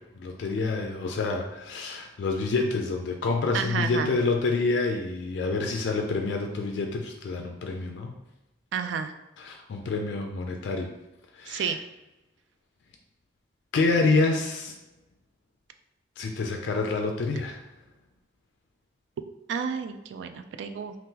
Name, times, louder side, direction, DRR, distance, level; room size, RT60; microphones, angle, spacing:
voice 1, 0.2-8.1 9.4-10.9 11.3-11.8 13.7-14.7 16.2-17.6, left 3 dB, 70° left, 3 dB, 0.3 m, -27 dB
voice 2, 3.5-4.2 8.7-9.1 11.5-11.8 19.5-21.0, right 6 dB, 75° right, 8 dB, 0.3 m, -31 dB
2.7 x 2.4 x 3.6 m, 0.98 s
head